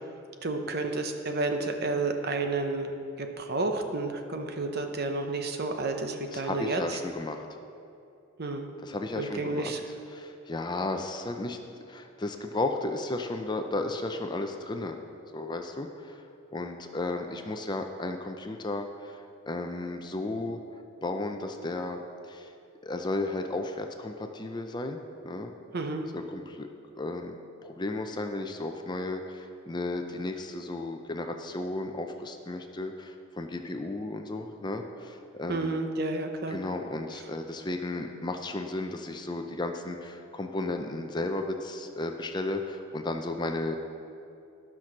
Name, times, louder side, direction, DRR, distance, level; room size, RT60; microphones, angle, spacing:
voice 1, 0.4-7.0 8.4-8.7 9.2-9.8 25.7-26.1 35.5-36.6, right 3 dB, 50° right, 5 dB, 0.8 m, -31 dB
voice 2, 6.3-7.5 8.8-9.7 10.1-11.6 11.9-15.0 15.3-16.3 16.5-20.6 21.0-22.0 22.2-22.5 22.8-25.5 26.1-26.7 27.0-35.8 36.5-43.8, left 2 dB, 20° left, 5 dB, 0.5 m, -34 dB
12.5 x 6.0 x 6.0 m, 2.7 s
head